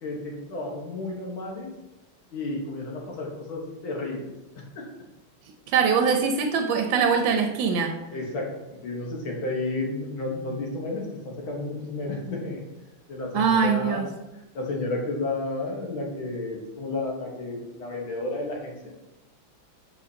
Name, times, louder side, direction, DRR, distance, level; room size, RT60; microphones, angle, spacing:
voice 1, 0.0-1.7 2.3-4.9 8.1-12.6 13.1-14.3 14.5-18.9, left 2 dB, 85° left, -1 dB, 2.1 m, -32 dB
voice 2, 5.7-7.9 13.3-14.1, right 6 dB, 85° right, 4 dB, 1.4 m, -22 dB
7.7 x 5.1 x 2.7 m, 1.0 s
omnidirectional pair, 2.1 m